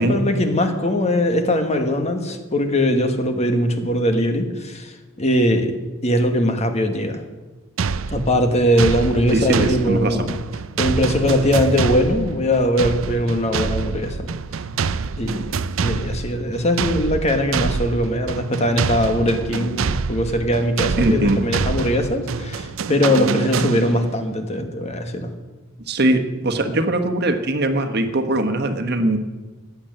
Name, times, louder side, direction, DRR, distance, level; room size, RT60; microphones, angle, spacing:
voice 1, 0.0-4.9 5.2-5.7 6.0-7.2 8.1-10.3 10.8-14.3 15.2-15.5 15.8-25.3, equal, 35° left, 6 dB, 1.5 m, -21 dB
sound 1, 7.8-24.2, right 5 dB, 90° right, 0.5 m, -26 dB
voice 2, 9.3-10.3 21.0-21.4 25.9-29.2, right 1 dB, 55° right, 6 dB, 1.3 m, -21 dB
14.5 x 9.6 x 7.8 m, 1.2 s
head